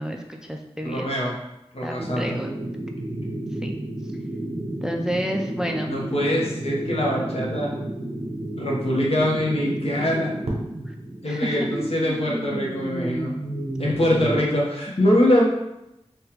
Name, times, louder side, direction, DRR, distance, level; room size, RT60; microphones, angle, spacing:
voice 1, 0.0-1.1 1.8-2.5 3.6-3.7 4.8-5.9 9.7-9.8 10.9-11.0 11.3-11.7 13.9-14.3, equal, 5° right, 2 dB, 0.3 m, -30 dB
voice 2, 0.8-1.3 1.7-2.3 5.9-7.7 8.5-10.3 11.2-13.3 13.8-15.4, left 1 dB, 65° left, -4 dB, 0.9 m, -23 dB
sound 1, 2.0-14.4, right 1 dB, 70° right, 0.6 m, -31 dB
3.5 x 2.3 x 2.9 m, 0.88 s
wide cardioid pair, 45°, 11 cm